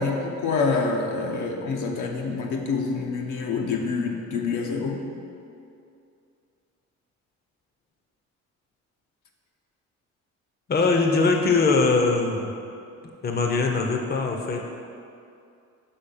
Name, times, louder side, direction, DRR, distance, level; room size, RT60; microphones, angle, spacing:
voice 1, 0.0-5.0, left 4 dB, 80° left, 1 dB, 0.8 m, -26 dB
voice 2, 10.7-12.5 13.2-14.7, left 3 dB, 30° left, 3 dB, 0.6 m, -22 dB
5.5 x 4.0 x 5.4 m, 2.5 s
cardioid pair, 90°, 30 cm